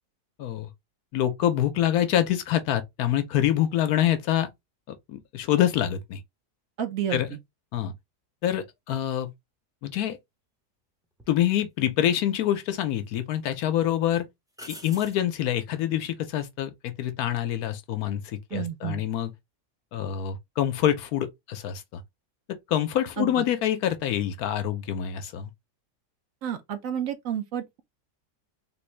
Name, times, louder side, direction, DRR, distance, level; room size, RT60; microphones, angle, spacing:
voice 1, 0.4-0.7 1.1-4.5 5.1-6.2 7.1-7.3 7.7-7.9 8.4-9.3 9.8-10.2 11.3-14.3 14.7-19.3 19.9-22.0 22.7-25.5, left 11 dB, 75° left, 1.1 m, -26 dB
voice 2, 6.8-7.3 18.5-19.0 23.2-23.4 26.4-27.8, right 9 dB, 65° right, 1.0 m, -31 dB
sound 1, 11.2-11.4 12.5-13.1 13.5-13.7 14.5-15.3 18.4-18.7, equal, 5° right, 0.5 m, -45 dB
3.7 x 2.6 x 3.2 m
omnidirectional pair, 1.7 m